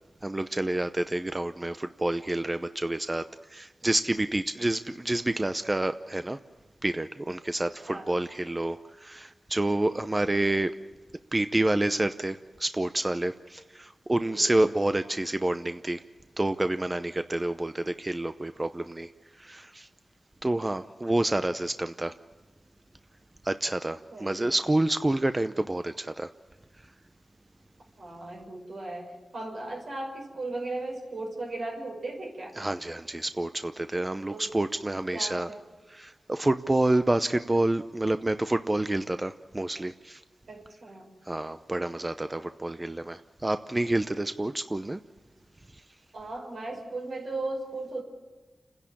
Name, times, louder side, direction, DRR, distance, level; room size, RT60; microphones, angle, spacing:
voice 1, 0.2-6.4 6.8-10.7 11.3-16.0 16.4-19.1 19.4-19.9 20.4-22.1 23.4-26.3 32.6-35.5 35.9-40.2 41.2-45.0, right 1 dB, 25° right, 10 dB, 0.7 m, -28 dB
voice 2, 7.6-8.2 14.3-14.6 24.1-24.6 28.0-32.6 34.3-34.5 35.1-35.6 40.5-41.1 46.1-48.0, right 2 dB, 80° right, 0 dB, 5.9 m, -37 dB
30.0 x 10.5 x 8.6 m, 1.3 s
cardioid pair, 55°, 0 cm